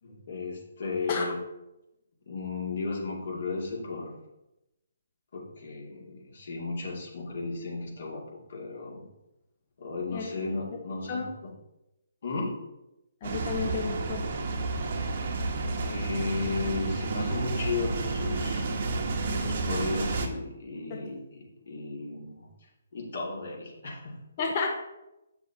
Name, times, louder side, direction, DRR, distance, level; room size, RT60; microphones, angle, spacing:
voice 1, 0.0-1.4 2.3-4.2 5.3-9.0 9.8-11.5 12.2-12.6 15.8-18.7 19.4-22.5 22.9-24.2, left 3 dB, 60° left, -2 dB, 2.3 m, -35 dB
voice 2, 13.2-14.3 20.9-21.0 24.4-24.7, left 5 dB, 40° left, 1 dB, 0.9 m, -31 dB
sound 1, 13.2-20.3, right 3 dB, 45° right, 1.1 m, -31 dB
8.5 x 6.1 x 2.8 m, 0.93 s
figure-of-eight pair, 145°, 0 cm